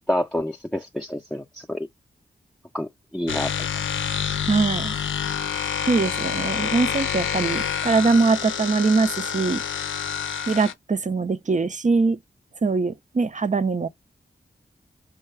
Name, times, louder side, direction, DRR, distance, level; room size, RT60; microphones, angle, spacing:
voice 1, 0.0-1.9 2.7-3.5, left 1 dB, 5° left, 0.6 m, -28 dB
sound 1, 3.3-10.7, left 8 dB, 80° left, 0.5 m, -27 dB
voice 2, 4.5-4.9 5.9-9.6 10.5-12.2 12.6-13.9, right 4 dB, 40° right, 0.6 m, -22 dB
5.6 x 2.3 x 3.2 m
cardioid pair, 45°, 20 cm